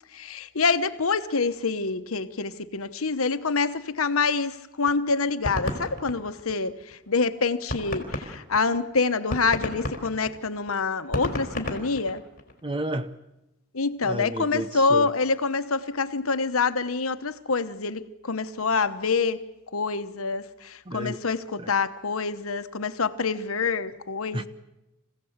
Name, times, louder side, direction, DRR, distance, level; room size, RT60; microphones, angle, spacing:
voice 1, 0.1-12.2 13.7-19.4 19.7-24.5, left 4 dB, 80° left, 1.1 m, -26 dB
sound 1, 4.9-6.9 7.3-7.4 7.7-12.6, left 1 dB, 45° left, 3.6 m, -32 dB
voice 2, 12.6-13.1 14.0-15.1 20.9-21.2 21.6-21.7 24.3-24.4, right 1 dB, 25° right, 0.8 m, -31 dB
27.0 x 16.0 x 8.1 m
head